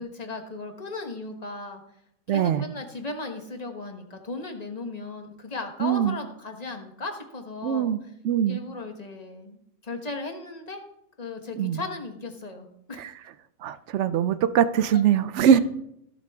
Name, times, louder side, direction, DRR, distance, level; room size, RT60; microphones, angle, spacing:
voice 1, 0.0-1.8 2.3-8.1 8.5-10.8 11.2-13.1 14.9-15.0 15.5-15.6, left 3 dB, 30° left, 5 dB, 1.3 m, -36 dB
voice 2, 2.3-2.6 5.8-6.2 7.6-8.0 8.2-8.6 11.6-11.8 13.6-15.6, right 9 dB, 65° right, 13 dB, 0.8 m, -22 dB
16.0 x 7.5 x 3.6 m, 0.75 s
omnidirectional pair, 1.5 m